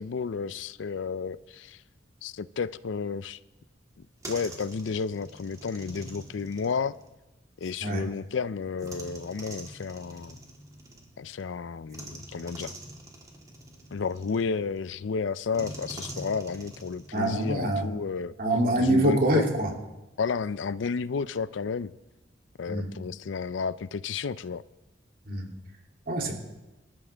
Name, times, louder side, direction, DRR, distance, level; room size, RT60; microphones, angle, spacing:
voice 1, 0.0-1.8 2.2-3.4 4.0-7.0 7.6-10.4 11.2-12.7 13.9-18.3 18.8-19.4 20.2-21.9 22.6-24.6, left 5 dB, 85° left, 0.5 m, -32 dB
sound 1, 3.9-7.8 8.8-11.4 11.9-14.8 15.5-17.9, right 1 dB, 20° right, 2.2 m, -45 dB
voice 2, 17.1-17.9 18.4-19.7 22.7-22.9 25.2-25.5 26.1-26.3, right 1 dB, 50° right, 2.8 m, -25 dB
25.5 x 12.5 x 3.4 m
head